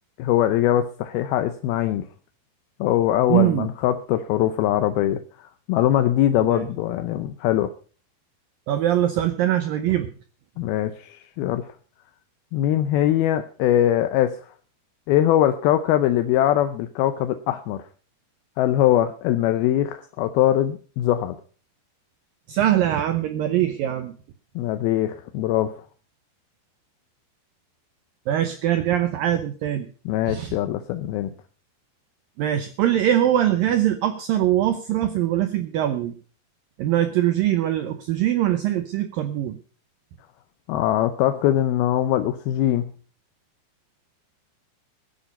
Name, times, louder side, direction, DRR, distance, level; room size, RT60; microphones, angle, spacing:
voice 1, 0.2-2.1 2.8-7.7 10.6-11.7 12.5-14.5 15.1-17.8 18.6-21.4 24.6-25.8 30.1-31.3 40.7-42.9, left 12 dB, 80° left, 9 dB, 2.3 m, -22 dB
voice 2, 3.3-3.7 6.4-6.7 8.7-10.1 22.5-24.1 28.3-29.9 30.3-30.6 32.4-36.2 36.8-39.6, right 12 dB, 80° right, 9 dB, 2.0 m, -22 dB
15.0 x 10.0 x 5.4 m, 0.40 s
omnidirectional pair, 5.1 m